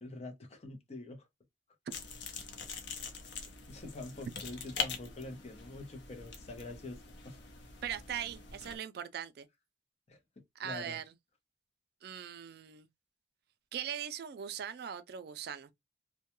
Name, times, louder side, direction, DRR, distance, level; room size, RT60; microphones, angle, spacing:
voice 1, 0.0-1.3 3.7-7.4 10.1-10.2 10.6-11.0, left 2 dB, 40° left, 0.6 m, -45 dB
sound 1, 1.9-8.8, left 5 dB, 75° left, 0.6 m, -43 dB
voice 2, 7.8-9.5 10.6-11.1 12.0-12.9 13.7-15.7, right 9 dB, 60° right, 0.3 m, -40 dB
2.2 x 2.1 x 2.9 m
head